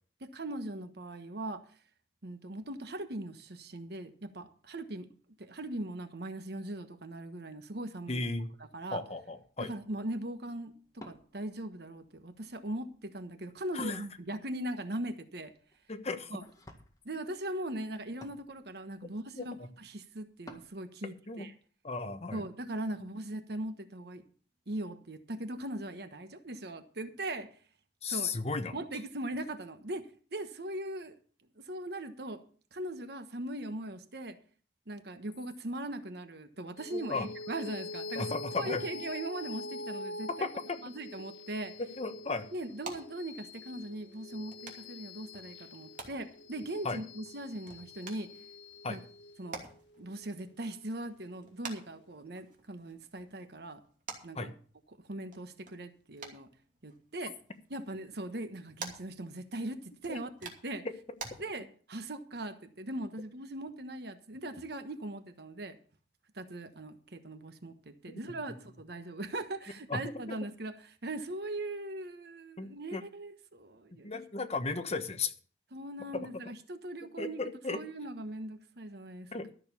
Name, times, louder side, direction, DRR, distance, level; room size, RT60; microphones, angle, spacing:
voice 1, 0.2-1.6 2.2-5.1 5.4-8.2 8.7-9.0 9.6-15.5 16.3-16.4 17.0-21.5 22.3-24.2 24.7-27.5 28.1-28.3 28.7-31.2 31.6-32.4 32.7-34.4 34.9-38.3 38.6-40.5 40.8-41.7 42.5-48.3 48.9-49.0 49.4-49.6 50.0-53.8 54.2-54.5 55.0-56.5 56.8-57.4 57.7-60.9 61.4-65.8 66.3-74.1 75.7-77.4 77.7-79.3, right 1 dB, 65° right, 1.3 m, -40 dB
voice 2, 8.1-8.5 8.9-9.7 13.7-14.0 15.9-16.3 19.3-19.7 21.0-21.4 21.8-22.4 23.0-23.1 28.0-28.7 36.9-37.3 38.2-38.8 40.4-40.8 41.8-42.5 46.8-47.0 48.8-49.0 54.3-54.5 60.1-60.2 68.1-68.2 68.5-68.6 69.9-70.0 72.6-73.0 74.0-75.3 76.1-76.3 77.2-77.8 79.3-79.5, left 3 dB, 35° left, 1.2 m, -35 dB
Wood, 9.3-20.8, left 1 dB, 20° left, 1.9 m, -58 dB
sound 1, 36.8-51.5, left 2 dB, 75° left, 1.5 m, -46 dB
sound 2, 41.5-61.3, right 4 dB, 50° right, 2.7 m, -51 dB
13.0 x 6.8 x 6.8 m
head